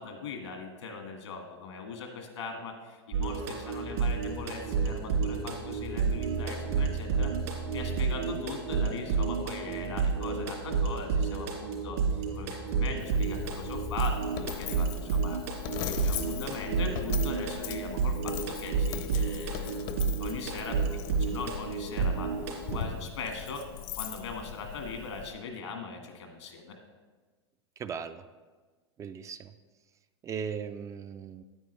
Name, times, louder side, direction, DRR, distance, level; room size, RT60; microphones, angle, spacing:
voice 1, 0.0-15.4 15.9-19.8 20.2-20.9 21.2-22.3 22.7-23.7 24.0-26.8, left 4 dB, 80° left, 4 dB, 1.7 m, -40 dB
sound 1, 3.1-22.8, right 5 dB, 70° right, 3.1 m, -30 dB
Coin (dropping), 13.0-25.3, left 9 dB, 50° left, 0.7 m, -39 dB
voice 2, 27.8-28.2 29.0-29.5 30.2-31.4, right 6 dB, 20° right, 10 dB, 0.3 m, -37 dB
9.3 x 8.9 x 3.2 m, 1.4 s
hypercardioid pair, 115°, 14 cm